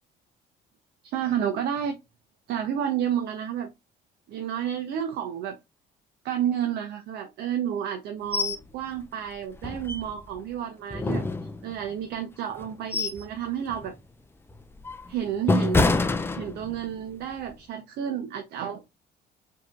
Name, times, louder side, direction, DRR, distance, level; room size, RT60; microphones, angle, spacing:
voice 1, 1.0-2.0 2.5-3.7 4.3-5.6 6.2-11.2 11.6-13.9 15.1-15.9 16.4-18.8, right 9 dB, 75° right, 0.7 m, -30 dB
sound 1, 8.3-8.6 9.0-9.1 9.6-10.4 10.9-11.9 12.5-13.3 13.7-14.0 14.5-17.0 17.3-17.5, left 3 dB, 15° left, 0.5 m, -27 dB
4.8 x 2.8 x 2.4 m
cardioid pair, 110°, 17 cm